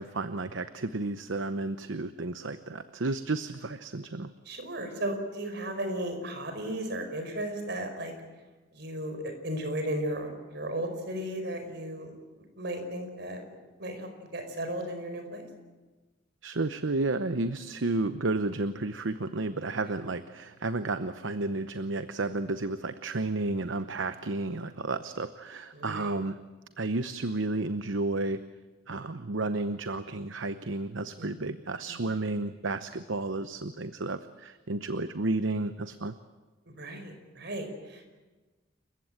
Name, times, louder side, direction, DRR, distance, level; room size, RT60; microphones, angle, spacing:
voice 1, 0.0-4.3 16.4-26.4 26.8-28.4 28.9-36.1, right 2 dB, 75° right, 11 dB, 0.9 m, -32 dB
voice 2, 4.4-8.1 8.7-12.1 12.6-13.4 13.8-15.5 25.7-26.1 31.2-31.3 31.9-32.2 36.7-38.1, right 1 dB, 60° right, 6 dB, 4.9 m, -35 dB
29.0 x 15.5 x 8.9 m, 1.2 s
head